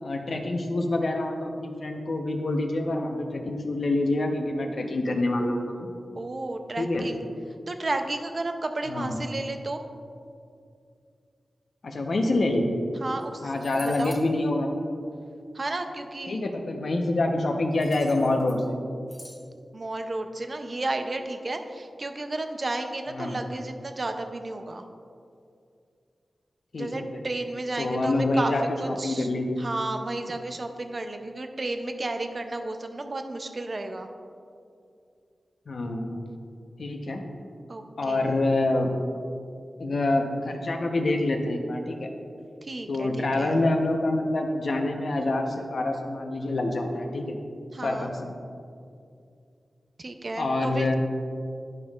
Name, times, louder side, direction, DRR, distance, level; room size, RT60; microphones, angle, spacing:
voice 1, 0.0-5.9 6.8-7.0 8.9-9.2 11.8-12.6 13.4-14.7 16.3-18.7 23.1-23.4 26.7-27.2 27.8-29.6 35.7-36.2 36.8-37.2 38.0-38.9 39.8-42.1 42.9-47.4 47.8-48.3 50.4-50.9, left 2 dB, 65° left, 2 dB, 0.8 m, -26 dB
voice 2, 6.1-7.3 7.7-9.8 13.0-13.5 13.8-14.1 15.5-16.4 19.7-24.9 26.7-28.5 28.8-29.3 29.6-34.1 37.7-38.4 42.6-43.6 47.7-48.1 50.0-50.9, right 2 dB, 40° right, 6 dB, 0.5 m, -32 dB
sound 1, 13.2-13.3 13.5-14.3 17.8-18.7 19.1-19.4, left 1 dB, 15° left, 1.2 m, -46 dB
12.0 x 5.4 x 2.4 m, 2.4 s
wide cardioid pair, 95°, 0 cm